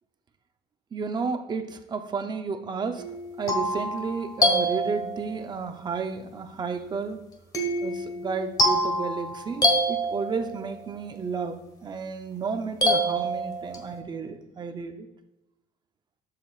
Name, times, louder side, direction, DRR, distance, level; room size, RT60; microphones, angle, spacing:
voice 1, 0.9-3.1 3.4-7.2 7.8-15.1, right 5 dB, 25° right, 7 dB, 0.6 m, -32 dB
sound 1, 3.0-5.5 7.5-10.7 12.8-14.0, equal, 20° left, 1.4 m, -26 dB
13.0 x 7.5 x 2.4 m, 0.95 s
cardioid pair, 150°, 17 cm